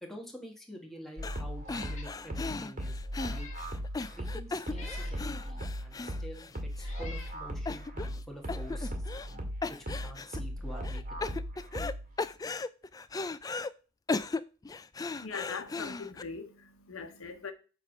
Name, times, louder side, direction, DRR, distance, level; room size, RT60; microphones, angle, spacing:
voice 1, 0.0-2.9 3.2-3.5 4.1-9.0 9.8-11.4, equal, ahead, 1.8 m, -47 dB
sound 1, 1.2-1.4 1.7-6.9 7.2-7.3 7.7-8.2 8.5-9.3 9.6-10.4 10.8-11.9 12.2-13.7 14.1-16.2, left 3 dB, 15° left, 0.3 m, -37 dB
sound 2, 1.2-12.2, equal, 40° right, 2.0 m, -38 dB
Meow, 1.6-2.1 2.6-2.7 3.2-3.7 4.7-5.2 6.1-6.2 6.8-7.4, left 4 dB, 35° left, 2.0 m, -48 dB
voice 2, 15.1-17.5, left 5 dB, 70° left, 1.0 m, -41 dB
8.2 x 3.6 x 6.0 m
head